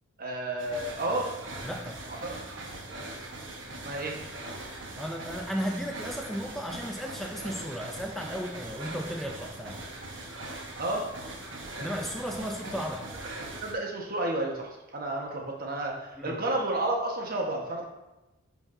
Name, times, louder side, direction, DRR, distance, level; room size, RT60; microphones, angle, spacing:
voice 1, 0.2-1.3 2.1-2.4 3.8-4.2 10.8-11.0 12.4-12.5 13.6-17.8, right 2 dB, 45° right, -1 dB, 1.3 m, -31 dB
sound 1, 0.6-13.7, right 2 dB, 65° right, 1.2 m, -41 dB
voice 2, 1.6-2.0 5.0-9.8 11.8-13.1 16.2-16.4, equal, ahead, 1 dB, 0.4 m, -35 dB
11.0 x 4.7 x 2.7 m, 1.0 s
head